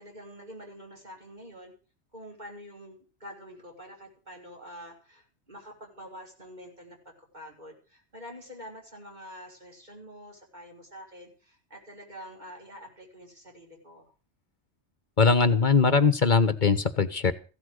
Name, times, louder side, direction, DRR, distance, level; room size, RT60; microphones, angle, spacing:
voice 1, 0.0-1.7 2.1-14.1, equal, 40° right, 0 dB, 5.8 m, -46 dB
voice 2, 15.2-17.3, left 4 dB, 45° left, 13 dB, 1.4 m, -21 dB
16.0 x 12.5 x 6.5 m, 0.36 s
omnidirectional pair, 1.1 m